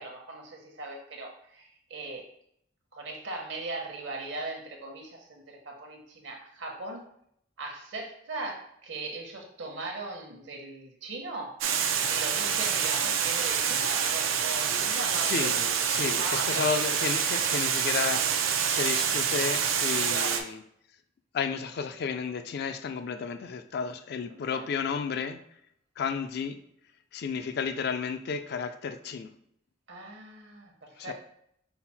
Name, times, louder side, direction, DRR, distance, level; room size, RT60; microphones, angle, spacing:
voice 1, 0.0-2.3 2.9-7.0 7.6-11.6 11.9-15.6 16.2-16.8 20.1-20.4 24.3-24.7 29.9-31.1, right 2 dB, 65° right, 1 dB, 1.0 m, -39 dB
Water, 11.6-20.4, right 7 dB, 90° right, 0.5 m, -27 dB
voice 2, 15.1-20.6 21.3-25.4 26.0-26.6 27.1-29.3 31.0-31.1, left 6 dB, 55° left, 9 dB, 0.3 m, -32 dB
5.7 x 2.0 x 4.3 m, 0.71 s
head